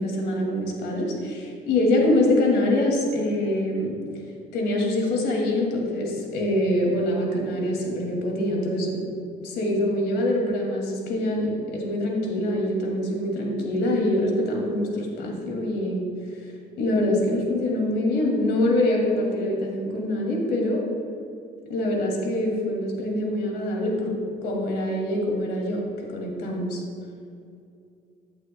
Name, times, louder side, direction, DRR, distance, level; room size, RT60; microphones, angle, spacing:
voice 1, 0.0-4.0 4.5-9.0 9.4-16.0 16.8-20.8 21.7-24.1 24.4-25.8 26.1-26.8, left 1 dB, 80° left, 0 dB, 2.4 m, -24 dB
15.0 x 8.8 x 2.2 m, 2.4 s
cardioid pair, 110°, 17 cm